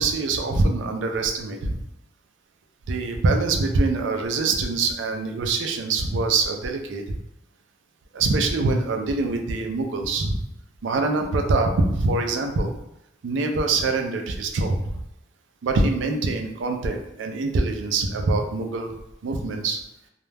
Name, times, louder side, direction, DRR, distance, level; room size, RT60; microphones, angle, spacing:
voice 1, 0.0-1.7 2.9-7.2 8.1-10.4 10.8-12.7 13.2-15.0 15.6-18.9 19.2-19.8, right 3 dB, 80° right, 4 dB, 0.4 m, -24 dB
2.2 x 2.1 x 3.2 m, 0.84 s
head